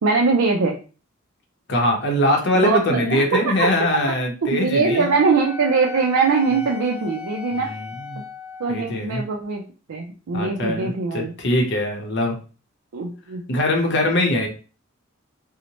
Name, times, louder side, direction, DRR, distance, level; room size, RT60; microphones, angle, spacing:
voice 1, 0.0-0.8 2.5-3.7 4.4-7.7 8.6-9.6 9.9-11.3 12.9-13.4, right 4 dB, 80° right, -1 dB, 0.4 m, -21 dB
voice 2, 1.7-5.1 7.5-8.2 8.7-9.2 10.3-12.4 13.5-14.5, left 1 dB, 55° left, 2 dB, 0.7 m, -22 dB
Wind instrument woodwind instrument, 4.9-9.0, left 5 dB, 30° right, 1.2 m, -36 dB
2.7 x 2.1 x 2.8 m, 0.35 s
head